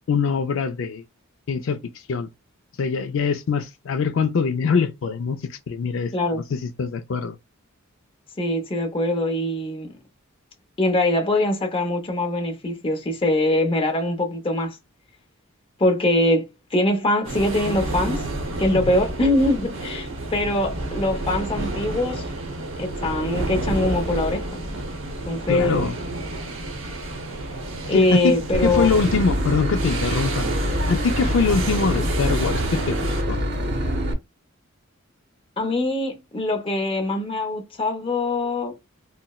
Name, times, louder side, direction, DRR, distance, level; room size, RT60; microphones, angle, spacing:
voice 1, 0.1-1.0 1.5-1.8 2.1-2.3 2.8-7.4 18.9-19.0 25.5-26.0 27.9-28.4 28.6-30.5 30.9-33.4, left 5 dB, 65° left, 0.4 m, -23 dB
voice 2, 6.1-6.4 8.4-9.9 10.8-14.8 15.8-18.2 18.6-22.3 22.8-24.6 25.3-25.9 27.8-29.0 35.6-38.7, left 1 dB, 25° left, 0.7 m, -23 dB
sound 1, 17.2-33.2, right 2 dB, 75° right, 0.9 m, -30 dB
Boat Water vehicle / Engine, 28.5-34.1, equal, 55° right, 0.7 m, -25 dB
4.0 x 2.0 x 2.3 m
head